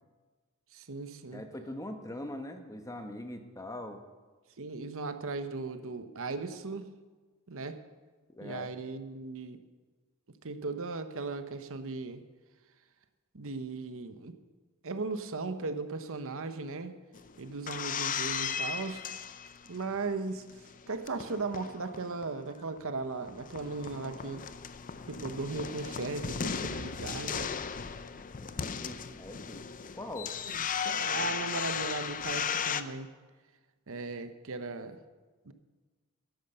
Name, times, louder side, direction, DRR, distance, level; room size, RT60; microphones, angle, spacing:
voice 1, 0.7-1.4 4.6-6.9 7.5-7.8 8.4-9.6 10.4-12.2 13.3-14.4 14.8-17.0 17.4-19.0 19.7-20.4 20.9-24.4 25.1-27.5 30.5-33.1 33.9-35.0 35.5-35.6, right 3 dB, 65° right, 10 dB, 0.9 m, -37 dB
voice 2, 1.3-4.0 8.3-8.7 28.4-29.6 29.9-30.3, left 1 dB, 15° left, 6 dB, 1.1 m, -42 dB
sound 1, 17.1-20.0 20.4-22.4 22.8-22.9 23.0-32.8, left 7 dB, 40° left, 0.6 m, -36 dB
13.0 x 11.0 x 6.7 m, 1.3 s
head